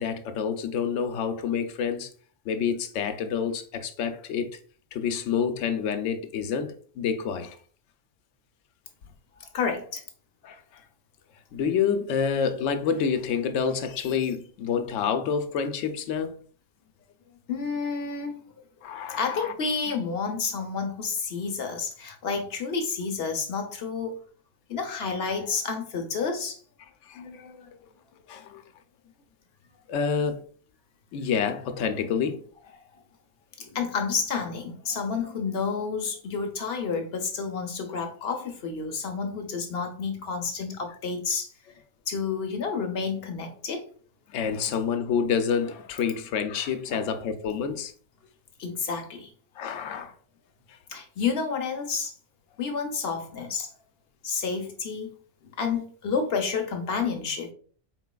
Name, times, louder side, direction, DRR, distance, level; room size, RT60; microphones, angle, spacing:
voice 1, 0.0-2.1 2.5-4.6 4.9-7.6 10.4-10.8 11.5-16.4 18.8-19.5 27.0-27.7 28.3-28.6 29.9-30.4 31.1-32.4 44.3-47.9 49.6-50.1, left 6 dB, 85° left, 0.9 m, -28 dB
voice 2, 9.4-10.0 17.5-18.4 19.2-24.2 24.7-26.6 33.6-41.5 42.1-43.9 46.9-47.2 48.6-49.3 49.6-49.7 50.9-52.1 52.6-53.7 54.2-55.1 55.4-57.5, left 5 dB, 60° left, 0.9 m, -30 dB
4.3 x 4.0 x 2.2 m
omnidirectional pair, 1.2 m